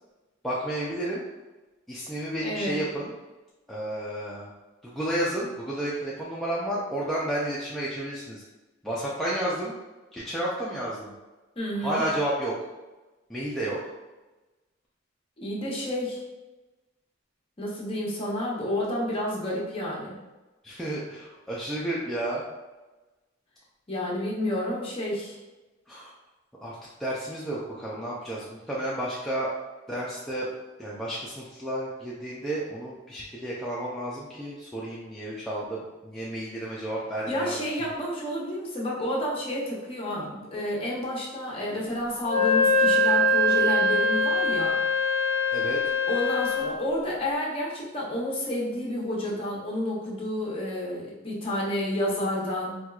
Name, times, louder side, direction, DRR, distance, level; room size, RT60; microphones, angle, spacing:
voice 1, 0.4-1.2 1.9-3.1 3.7-4.5 4.8-8.4 8.8-9.7 10.1-11.1 11.8-12.6 13.3-13.8 20.6-22.4 25.9-26.1 26.6-29.5 29.9-30.5 30.8-37.6 45.5-45.8, right 1 dB, ahead, -7 dB, 0.4 m, -31 dB
voice 2, 2.4-2.8 11.6-12.0 15.4-16.2 17.6-20.2 23.9-25.4 37.3-44.8 46.1-52.8, left 1 dB, 30° left, -4 dB, 0.8 m, -30 dB
Wind instrument woodwind instrument, 42.3-46.7, left 1 dB, 85° left, 0.5 m, -23 dB
4.3 x 2.3 x 2.3 m, 1.1 s
head